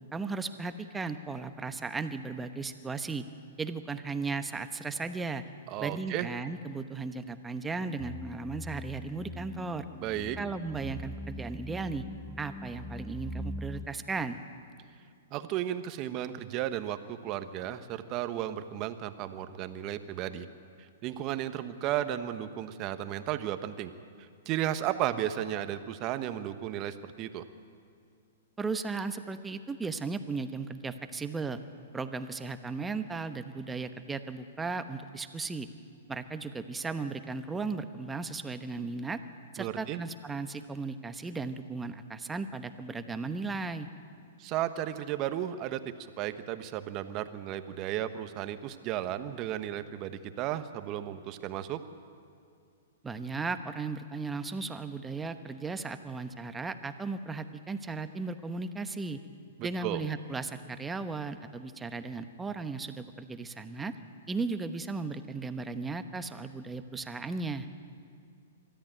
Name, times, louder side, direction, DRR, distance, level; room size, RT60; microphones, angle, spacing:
voice 1, 0.1-3.2 3.6-5.4 5.8-9.9 10.4-12.0 12.4-14.4 28.6-31.6 31.9-35.7 36.1-39.2 39.5-43.9 53.0-59.2 59.6-63.9 64.3-67.7, right 4 dB, 10° right, 9 dB, 1.0 m, -36 dB
voice 2, 5.7-6.3 10.0-10.4 15.3-20.5 20.8-23.9 24.2-27.4 39.6-40.0 44.4-45.8 46.2-51.8 59.6-60.0, right 12 dB, 35° right, 10 dB, 1.2 m, -34 dB
sound 1, 8.0-13.9, left 2 dB, 10° left, 0.7 m, -42 dB
23.0 x 14.0 x 9.1 m, 2.3 s
hypercardioid pair, 130°, 0 cm